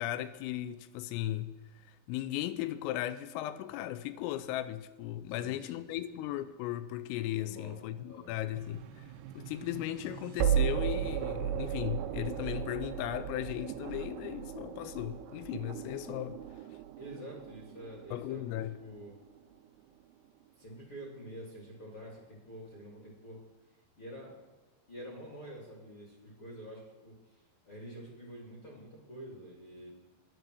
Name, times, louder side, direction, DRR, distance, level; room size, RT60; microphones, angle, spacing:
voice 1, 0.0-9.0 9.3-16.4 18.1-18.8, left 13 dB, 90° left, 3.3 m, -37 dB
voice 2, 5.3-6.1 7.4-7.8 8.0-8.4 17.0-18.5 18.8-19.2 20.6-23.5 24.0-24.4 24.9-27.4 27.6-29.9, right 1 dB, 35° left, 2.4 m, -47 dB
sound 1, 8.6-19.6, right 9 dB, 85° right, 3.0 m, -36 dB
12.5 x 10.5 x 6.3 m
omnidirectional pair, 5.8 m